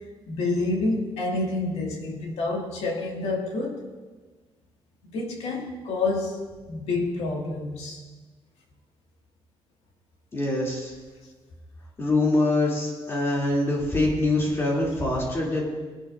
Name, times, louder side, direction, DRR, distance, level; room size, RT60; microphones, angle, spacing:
voice 1, 0.3-3.9 5.1-8.0 13.0-13.1, left 2 dB, 80° left, 0 dB, 2.3 m, -28 dB
voice 2, 10.3-10.9 12.0-15.6, left 2 dB, 25° left, -3 dB, 2.9 m, -24 dB
21.0 x 11.0 x 2.6 m, 1.3 s
cardioid pair, 175°, 11 cm